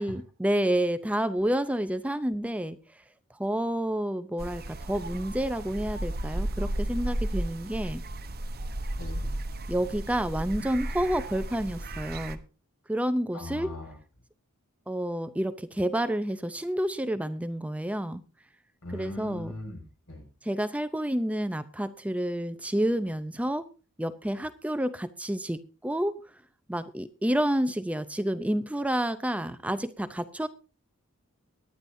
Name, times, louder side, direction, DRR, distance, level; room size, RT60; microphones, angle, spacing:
voice 1, 0.0-2.8 3.4-8.0 9.7-12.4 12.9-13.7 14.9-18.2 18.9-19.5 20.4-23.7 24.0-26.2 26.7-30.5, right 1 dB, 5° right, 11 dB, 0.5 m, -29 dB
sound 1, 4.4-12.4, right 1 dB, 45° right, 1.0 m, -34 dB
voice 2, 9.0-9.3 13.3-13.9 18.8-20.2, left 1 dB, 75° left, 1 dB, 6.6 m, -40 dB
23.0 x 10.0 x 2.7 m, 0.34 s
head